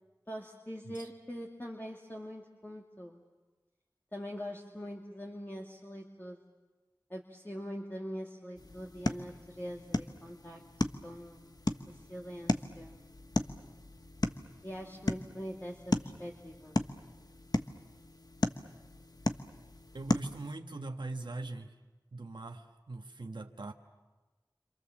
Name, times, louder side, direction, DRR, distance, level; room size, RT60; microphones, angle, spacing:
voice 1, 0.3-3.2 4.1-6.4 7.1-10.6 11.0-11.4 11.9-13.0 14.6-16.8, equal, 25° left, -1 dB, 2.5 m, -43 dB
sound 1, 8.6-20.6, left 2 dB, 55° left, 1.1 m, -36 dB
voice 2, 19.9-21.8 22.1-23.7, right 2 dB, 85° right, 3 dB, 1.5 m, -41 dB
29.0 x 26.5 x 7.3 m, 1.2 s
wide cardioid pair, 45°, 8 cm